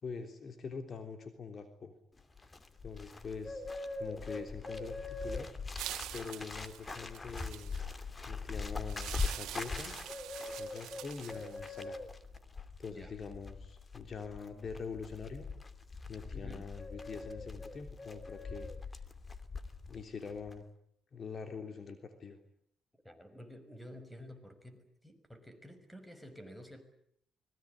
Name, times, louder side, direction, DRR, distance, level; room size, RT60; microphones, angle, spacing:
voice 1, 0.0-1.9 2.8-3.7 4.0-5.5 6.1-7.7 8.3-10.0 10.6-12.0 12.8-15.5 16.1-18.7 19.9-20.6 21.1-22.4, left 5 dB, 45° left, 6 dB, 3.3 m, -44 dB
Bird, 2.2-20.0 20.3-20.6, left 3 dB, 25° left, 2.6 m, -42 dB
sound 1, 5.8-7.9 8.9-11.8, right 13 dB, 85° right, 1.7 m, -45 dB
voice 2, 16.3-16.7 23.0-26.8, equal, 5° left, 10 dB, 6.0 m, -51 dB
25.5 x 21.5 x 9.9 m, 0.69 s
cardioid pair, 90°, 0 cm